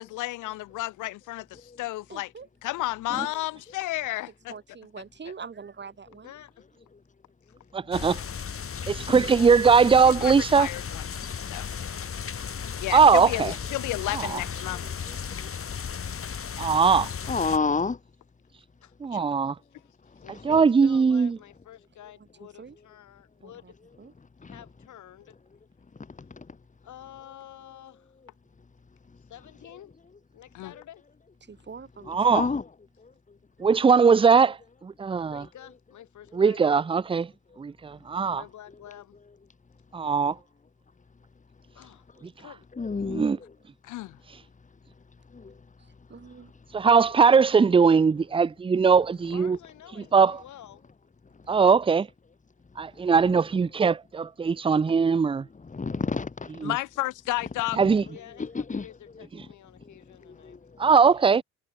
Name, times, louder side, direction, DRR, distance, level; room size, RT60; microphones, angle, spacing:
voice 1, 0.0-2.3 2.6-4.5 10.0-11.1 11.4-11.7 12.8-15.0 16.6-16.7 19.1-19.2 30.5-30.7 43.8-44.2 56.6-57.8, left 17 dB, 90° left, 1.0 m, -32 dB
voice 2, 2.1-2.5 4.5-6.3 13.0-14.3 14.6-14.9 22.6-22.8 23.4-23.7 24.0-24.1 31.4-32.5 45.8-46.5, right 5 dB, 35° right, 2.7 m, -45 dB
voice 3, 6.2-6.7 7.4-7.5 9.4-10.1 16.8-17.1 18.5-18.9 20.2-23.7 24.4-25.4 26.8-28.1 29.2-29.9 30.3-31.1 35.2-36.7 38.3-39.2 41.7-42.1 42.4-43.2 49.1-50.9 58.1-60.6 61.1-61.4, left 11 dB, 70° left, 5.7 m, -49 dB
voice 4, 7.7-8.2 8.9-10.7 12.9-13.5 16.6-17.0 19.0-19.5 20.4-21.4 32.1-32.4 33.6-34.6 34.8-35.4 36.4-37.3 37.6-38.4 39.9-40.3 43.1-43.4 46.7-49.6 50.1-50.4 51.5-52.1 52.8-55.5 57.8-58.0 60.8-61.4, right 5 dB, 20° right, 0.5 m, -20 dB
sound 1, 7.9-17.6, left 7 dB, 45° left, 4.7 m, -35 dB
voice 5, 17.3-18.0 20.5-20.6 24.4-24.6 32.3-32.6 42.8-43.4 45.3-45.5 55.6-56.3 58.4-58.8 60.3-60.6, left 4 dB, 25° left, 2.0 m, -28 dB
cardioid pair, 90°, 30 cm